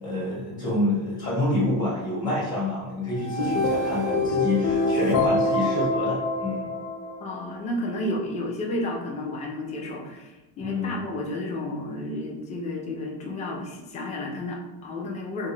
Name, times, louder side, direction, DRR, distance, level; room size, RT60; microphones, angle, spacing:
voice 1, 0.0-6.7 10.6-11.0, left 2 dB, 40° left, -6 dB, 0.8 m, -27 dB
sound 1, 3.2-7.5, left 2 dB, 90° left, 0.5 m, -25 dB
voice 2, 7.2-15.5, left 1 dB, 20° left, -1 dB, 0.3 m, -32 dB
2.2 x 2.1 x 3.1 m, 1.1 s
cardioid pair, 125°, 44 cm